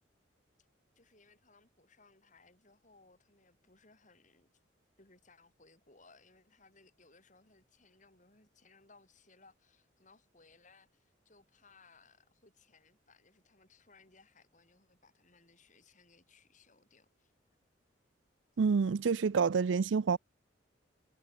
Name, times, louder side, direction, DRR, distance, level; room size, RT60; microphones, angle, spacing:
voice 1, 1.0-4.5 5.0-17.3, left 3 dB, 40° left, 7.3 m, -64 dB
voice 2, 18.6-20.2, right 5 dB, 75° right, 0.4 m, -28 dB
head